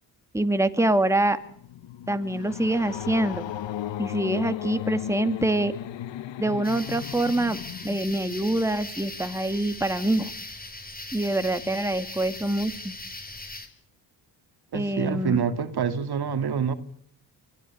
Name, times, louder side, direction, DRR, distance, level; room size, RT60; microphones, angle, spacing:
voice 1, 0.3-1.4 2.1-3.5 4.0-5.7 6.4-10.3 11.1-12.9 14.7-15.4, right 1 dB, 5° right, 9 dB, 2.3 m, -25 dB
sound 1, 1.3-8.6, left 12 dB, 70° left, 1.1 m, -35 dB
sound 2, 6.6-13.7, left 2 dB, 20° left, 5.3 m, -39 dB
voice 2, 14.7-16.7, right 7 dB, 55° right, 10 dB, 2.4 m, -26 dB
25.0 x 16.5 x 8.7 m, 0.63 s
supercardioid pair, 65°, 46 cm